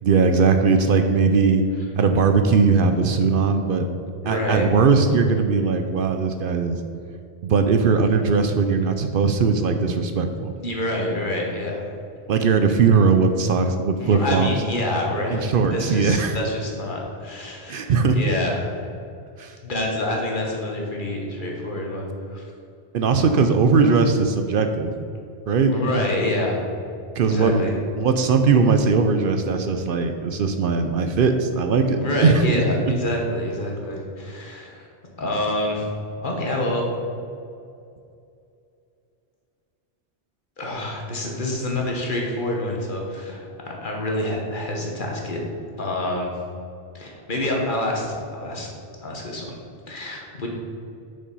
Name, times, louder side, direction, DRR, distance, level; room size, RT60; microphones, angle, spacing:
voice 1, 0.0-1.6 2.0-3.9 4.3-6.8 7.4-10.5 12.3-14.5 15.3-16.4 17.7-18.2 19.4-19.6 22.9-24.9 25.5-25.7 27.2-27.7 28.0-32.4, right 5 dB, 65° right, 7 dB, 0.7 m, -19 dB
voice 2, 4.2-4.7 10.6-11.9 14.0-18.8 19.6-22.4 25.7-26.6 27.3-27.7 32.0-34.9 35.2-35.8 36.1-36.8 40.6-45.4 45.8-46.3 46.9-48.7 49.0-49.6 49.9-50.5, left 1 dB, 50° left, -1 dB, 1.4 m, -27 dB
6.9 x 5.3 x 5.4 m, 2.5 s
omnidirectional pair, 1.1 m